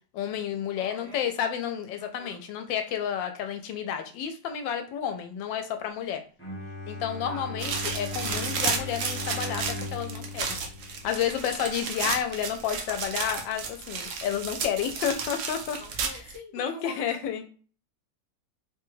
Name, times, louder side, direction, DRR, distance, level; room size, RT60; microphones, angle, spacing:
voice 1, 0.1-6.2 6.9-10.6 10.9-16.2 16.5-17.4, left 9 dB, 90° left, 7 dB, 1.3 m, -31 dB
voice 2, 0.8-1.3 2.0-2.4 7.2-7.5 15.8-17.5, left 1 dB, 45° right, -6 dB, 1.7 m, -45 dB
Bowed string instrument, 6.4-11.7, left 2 dB, 10° left, 0.8 m, -38 dB
sound 1, 7.6-16.4, right 5 dB, 70° right, 0.7 m, -33 dB
3.6 x 2.2 x 3.1 m, 0.40 s
omnidirectional pair, 2.0 m